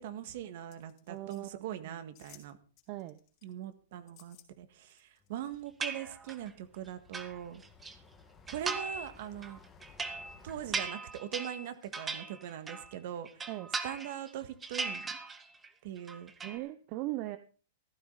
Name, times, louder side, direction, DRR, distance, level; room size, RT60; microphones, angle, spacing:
voice 1, 0.0-2.6 3.4-7.6 8.5-9.6 10.4-13.3 13.8-15.0 15.8-16.3, right 10 dB, 55° right, 10 dB, 1.8 m, -41 dB
sound 1, 0.7-1.4 2.2-2.5 2.8-3.5 4.1-4.5 4.9-5.6 6.0-6.1, left 12 dB, 35° left, 3.9 m, -59 dB
voice 2, 1.1-2.0 2.9-3.2 13.5-13.7 16.4-17.4, right 17 dB, 40° right, 12 dB, 0.7 m, -39 dB
sound 2, 5.2-10.9, left 4 dB, 20° left, 1.8 m, -59 dB
sound 3, 5.8-6.5 6.9-7.9 8.5-9.1 9.4-12.9 13.2-14.3 14.6-15.7 16.0-16.6, right 4 dB, 15° right, 1.1 m, -38 dB
14.5 x 12.5 x 4.0 m, 0.39 s
hypercardioid pair, 145°, 0 cm